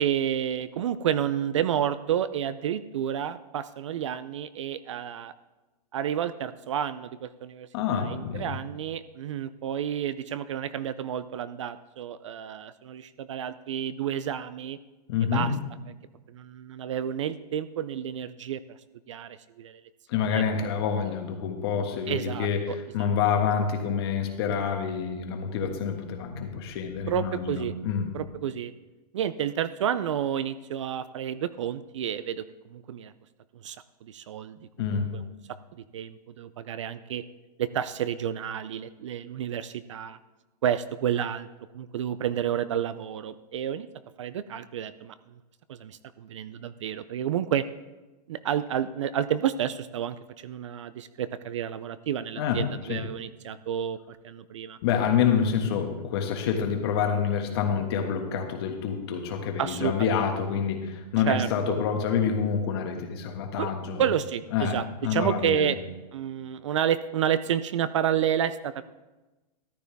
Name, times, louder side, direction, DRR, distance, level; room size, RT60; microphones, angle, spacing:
voice 1, 0.0-5.3 5.9-14.8 15.3-15.5 16.3-18.8 19.1-19.8 20.1-20.4 22.1-23.2 27.1-27.7 28.1-28.7 29.1-32.4 32.7-33.1 33.5-35.3 35.9-37.2 37.6-40.2 40.6-41.5 41.7-43.9 44.2-45.4 45.7-47.7 48.3-54.8 59.6-60.3 61.3-61.5 63.6-63.7 64.0-64.8 65.1-65.8 66.1-68.8, right 9 dB, 45° right, 15 dB, 0.4 m, -30 dB
voice 2, 7.7-8.5 15.1-15.5 20.1-22.6 22.9-28.1 34.8-35.1 52.4-53.0 54.8-64.0 64.5-65.7, left 7 dB, 35° left, 4 dB, 1.5 m, -27 dB
13.5 x 11.5 x 3.5 m, 1.1 s
hypercardioid pair, 175°, 21 cm